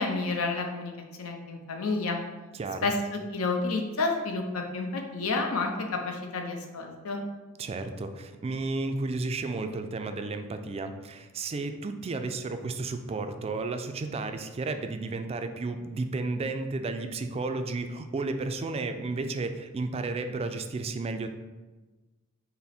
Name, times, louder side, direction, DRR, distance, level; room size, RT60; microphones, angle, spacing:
voice 1, 0.0-2.2 2.8-7.2, left 3 dB, 80° left, 3 dB, 0.7 m, -30 dB
voice 2, 2.5-2.9 7.6-21.3, right 3 dB, 30° right, 7 dB, 0.3 m, -33 dB
5.6 x 2.1 x 4.1 m, 1.2 s
head